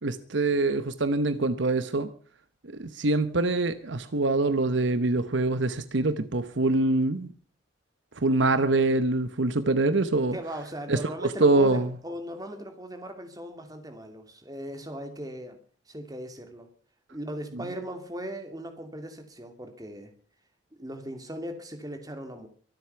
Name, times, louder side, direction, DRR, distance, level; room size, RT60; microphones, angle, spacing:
voice 1, 0.0-2.1 2.8-7.3 8.2-10.4 10.9-11.0 11.4-11.9, right 2 dB, 65° right, 1.0 m, -24 dB
voice 2, 10.3-15.6 15.9-16.7 17.1-20.1 20.7-22.5, equal, 20° right, 2.6 m, -38 dB
24.0 x 8.1 x 5.8 m
head